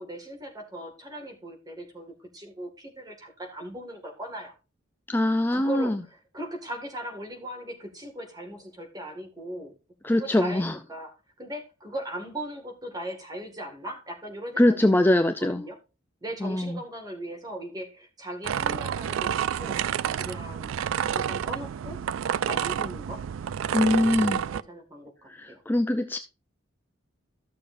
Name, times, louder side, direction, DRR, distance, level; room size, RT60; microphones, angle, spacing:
voice 1, 0.0-4.6 5.5-9.7 10.0-14.8 15.4-15.8 16.2-19.3 19.6-19.8 20.2-20.7 21.1-22.0 22.3-23.2 23.7-25.6, right 1 dB, 20° right, 2.0 m, -39 dB
voice 2, 5.1-6.0 10.0-10.7 14.6-15.6 16.4-16.8 23.7-24.4 25.4-26.2, left 1 dB, 10° left, 0.4 m, -22 dB
sound 1, 18.4-24.6, right 8 dB, 90° right, 0.3 m, -29 dB
14.0 x 6.7 x 2.6 m
head